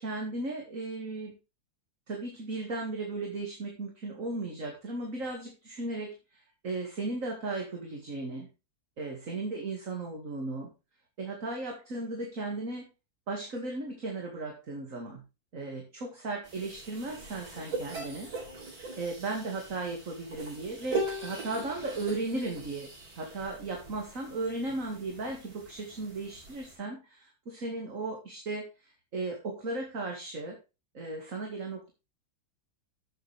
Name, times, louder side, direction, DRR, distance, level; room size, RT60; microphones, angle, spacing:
voice 1, 0.0-1.4 2.1-8.5 9.0-10.7 11.2-12.9 13.3-15.2 15.5-18.3 19.0-22.9 23.2-30.6 30.9-31.9, right 2 dB, 40° right, 1 dB, 2.4 m, -36 dB
sound 1, 16.4-26.7, right 2 dB, 75° right, 5.8 m, -40 dB
13.0 x 7.4 x 3.4 m, 0.29 s
omnidirectional pair, 2.2 m